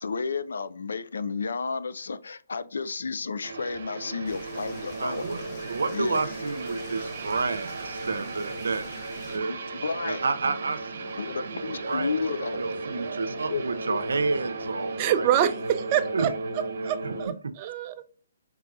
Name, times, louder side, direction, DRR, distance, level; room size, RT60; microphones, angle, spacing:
voice 1, 0.0-5.2 5.6-6.3 9.3-10.3 11.2-12.7 13.5-13.6 13.9-14.0, left 4 dB, 80° left, 0.4 m, -32 dB
sound 1, 3.4-17.3, right 3 dB, 60° right, 1.1 m, -35 dB
sound 2, 4.2-9.4, left 4 dB, 35° left, 0.6 m, -47 dB
voice 2, 5.0-5.4 5.7-8.8 9.3-9.5 10.0-10.8 11.9-12.1 12.6-15.3 16.1-16.3 16.8-17.2, right 4 dB, 85° right, 0.6 m, -30 dB
voice 3, 15.0-16.3 16.8-18.0, right 10 dB, 30° right, 0.5 m, -26 dB
4.7 x 3.4 x 2.5 m
hypercardioid pair, 150°, 0 cm